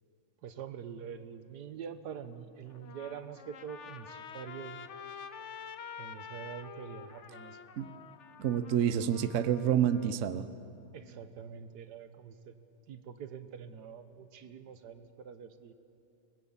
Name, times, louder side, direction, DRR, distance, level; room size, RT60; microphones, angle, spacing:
voice 1, 0.4-4.9 6.0-7.6 8.9-9.3 10.9-12.6 12.9-15.7, right 7 dB, 60° right, 11 dB, 1.3 m, -45 dB
Trumpet, 2.7-10.1, left 7 dB, 65° left, 0.7 m, -48 dB
voice 2, 8.4-10.4, right 9 dB, 80° right, 13 dB, 0.6 m, -28 dB
24.5 x 20.5 x 7.2 m, 2.8 s
omnidirectional pair, 2.3 m